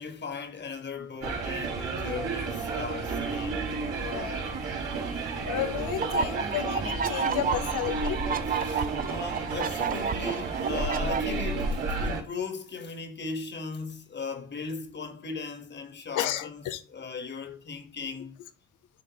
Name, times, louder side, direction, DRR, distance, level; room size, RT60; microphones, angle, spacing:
voice 1, 0.0-3.6 8.6-18.4, left 4 dB, 35° left, 1.3 m, -38 dB
sound 1, 1.2-12.2, right 4 dB, 90° right, 3.3 m, -32 dB
voice 2, 4.0-4.6 5.4-8.5 16.2-16.8, left 12 dB, 80° left, 0.8 m, -33 dB
sound 2, 6.0-11.2, right 7 dB, 30° right, 0.4 m, -31 dB
10.5 x 3.7 x 2.8 m
cardioid pair, 90°, 30 cm